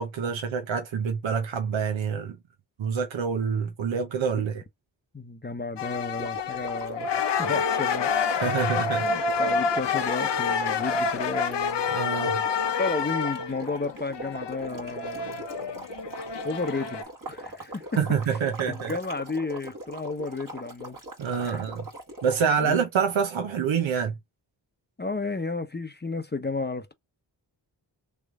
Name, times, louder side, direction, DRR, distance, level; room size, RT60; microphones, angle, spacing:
voice 1, 0.0-2.4 2.8-4.6 8.4-9.4 11.9-12.3 18.0-19.0 21.2-21.8 22.2-24.1, right 6 dB, 75° right, 0.9 m, -27 dB
voice 2, 5.1-7.1 7.4-8.1 8.5-11.9 12.8-15.4 16.4-17.8 18.3-18.4 18.7-21.0 21.4-21.7 22.6-22.8 25.0-26.9, left 3 dB, 20° left, 0.8 m, -33 dB
sound 1, 5.8-17.0, left 5 dB, 65° left, 0.7 m, -28 dB
sound 2, 6.2-22.6, right 1 dB, 45° right, 1.6 m, -41 dB
3.3 x 3.1 x 3.6 m
cardioid pair, 40°, 46 cm